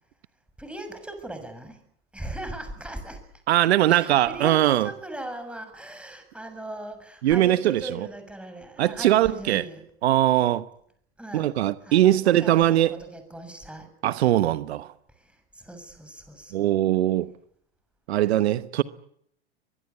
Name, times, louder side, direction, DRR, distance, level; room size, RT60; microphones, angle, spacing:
voice 1, 0.6-1.8 2.1-3.2 3.9-9.8 11.2-11.5 11.8-13.9 15.1-16.7, right 1 dB, 5° right, 6.8 m, -39 dB
voice 2, 3.5-4.9 7.2-8.1 8.8-9.6 10.0-10.7 11.3-13.0 14.0-14.9 16.5-17.3 18.1-18.8, right 13 dB, 70° right, 1.1 m, -21 dB
24.0 x 21.5 x 8.4 m
hypercardioid pair, 100°, 33 cm